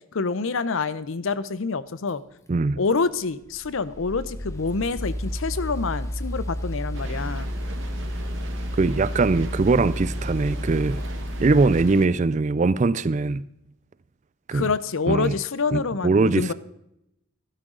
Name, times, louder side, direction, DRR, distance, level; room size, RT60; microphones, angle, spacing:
voice 1, 0.1-2.2 2.8-7.5 14.5-16.5, left 4 dB, 65° left, 0.6 m, -27 dB
sound 1, 2.1-11.8, equal, 15° left, 1.1 m, -31 dB
voice 2, 2.5-2.8 8.8-11.0 11.4-13.5 14.5-14.7 15.1-15.4 15.7-16.5, right 3 dB, 35° right, 0.3 m, -21 dB
sound 2, 6.9-12.1, right 2 dB, 60° right, 1.3 m, -40 dB
14.0 x 12.5 x 3.8 m
head